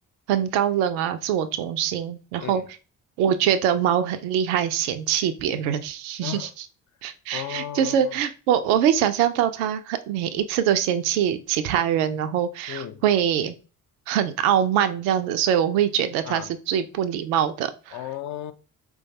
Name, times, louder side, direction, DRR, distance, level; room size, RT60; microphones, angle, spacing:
voice 1, 0.3-2.6 3.2-6.5 7.0-13.5 14.1-18.0, right 9 dB, 70° right, 0.5 m, -23 dB
voice 2, 7.3-8.1 12.7-13.0 16.2-16.5 17.9-18.5, left 11 dB, 45° left, 0.6 m, -34 dB
4.3 x 2.3 x 2.7 m
figure-of-eight pair, 40°, 42 cm